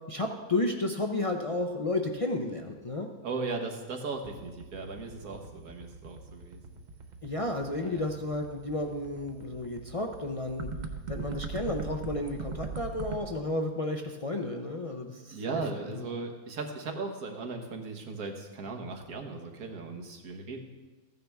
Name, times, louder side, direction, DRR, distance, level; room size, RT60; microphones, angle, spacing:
voice 1, 0.1-3.1 7.2-10.7 11.1-16.0, left 2 dB, 45° left, 2 dB, 0.4 m, -32 dB
voice 2, 3.2-6.6 7.8-8.1 15.3-20.6, right 3 dB, 85° right, 3 dB, 1.7 m, -37 dB
sound 1, 4.2-13.2, right 4 dB, 40° right, 0.7 m, -40 dB
14.5 x 9.4 x 3.5 m, 1.2 s
omnidirectional pair, 1.5 m